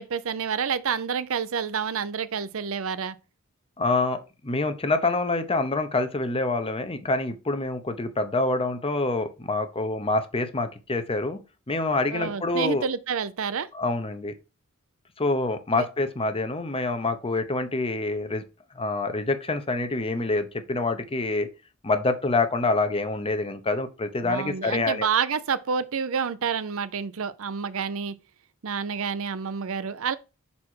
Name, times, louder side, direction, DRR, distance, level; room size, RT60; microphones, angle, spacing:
voice 1, 0.0-3.2 12.1-13.7 15.7-15.9 24.2-28.1 28.6-30.2, right 6 dB, 65° right, 0.6 m, -28 dB
voice 2, 3.8-11.4 11.7-12.9 13.7-14.3 15.2-18.4 18.7-21.5 21.8-25.1, left 2 dB, 25° left, 0.8 m, -26 dB
6.0 x 4.3 x 4.5 m
head